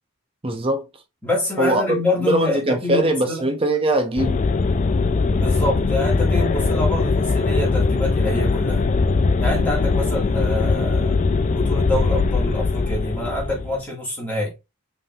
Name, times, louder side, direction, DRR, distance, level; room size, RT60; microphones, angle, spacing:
voice 1, 0.4-0.9 1.6-4.4, right 1 dB, 25° right, 0.7 m, -21 dB
voice 2, 1.2-3.5 5.3-8.9 9.4-14.5, left 1 dB, 5° left, 1.9 m, -26 dB
sound 1, 4.2-13.8, left 4 dB, 35° left, 0.3 m, -20 dB
5.2 x 3.4 x 2.4 m
head